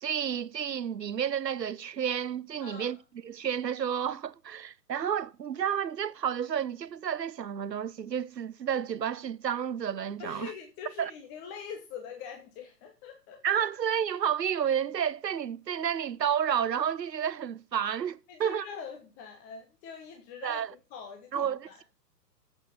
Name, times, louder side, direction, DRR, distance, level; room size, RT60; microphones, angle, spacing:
voice 1, 0.0-3.0 3.2-10.5 11.0-11.1 13.4-18.7 20.4-20.7 21.3-21.8, right 8 dB, 80° right, 0.7 m, -31 dB
voice 2, 2.6-3.0 10.2-13.4 18.3-21.8, left 6 dB, 20° left, 1.1 m, -44 dB
8.0 x 6.2 x 7.1 m
figure-of-eight pair, 125°, 49 cm